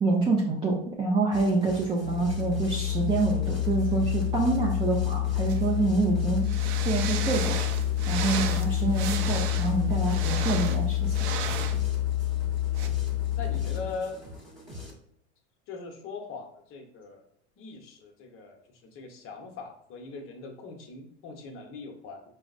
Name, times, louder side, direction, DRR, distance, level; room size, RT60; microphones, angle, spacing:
voice 1, 0.0-6.5 6.8-7.6 8.1-11.1, right 3 dB, 15° right, -1 dB, 0.4 m, -26 dB
sound 1, 1.3-14.9, left 1 dB, ahead, 1.0 m, -43 dB
Musical instrument, 2.0-14.0, left 12 dB, 70° left, 0.7 m, -28 dB
sound 2, 5.5-5.6 6.5-11.8 12.7-12.9, right 7 dB, 70° right, 0.6 m, -34 dB
voice 2, 13.4-14.2 15.7-17.2 17.6-22.2, left 4 dB, 35° left, 3 dB, 0.8 m, -41 dB
4.9 x 2.0 x 2.4 m, 0.70 s
hypercardioid pair, 115°, 35 cm